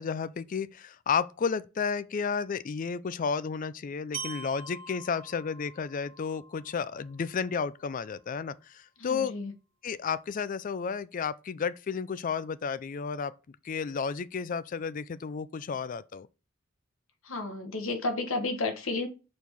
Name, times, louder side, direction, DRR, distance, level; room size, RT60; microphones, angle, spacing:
voice 1, 0.0-9.3 9.8-16.3, left 6 dB, 40° left, 0.4 m, -32 dB
Glockenspiel, 4.1-8.1, right 4 dB, 65° right, 2.2 m, -45 dB
voice 2, 9.0-9.5 17.2-19.1, left 3 dB, 75° left, 1.3 m, -32 dB
4.7 x 4.3 x 5.2 m
head